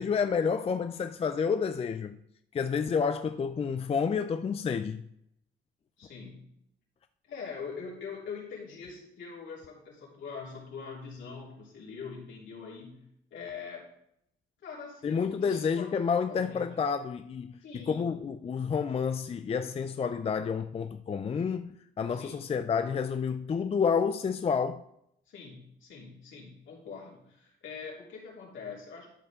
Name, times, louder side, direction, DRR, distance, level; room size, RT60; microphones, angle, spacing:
voice 1, 0.0-2.2 2.5-5.1 15.0-21.7 22.0-24.8, left 6 dB, 30° left, 0.4 m, -29 dB
voice 2, 6.0-6.5 7.3-13.9 14.6-15.9 16.3-16.7 17.6-18.1 22.2-22.4 25.3-29.1, left 5 dB, 75° left, 3.6 m, -43 dB
12.0 x 5.5 x 3.7 m
cardioid pair, 90°, 20 cm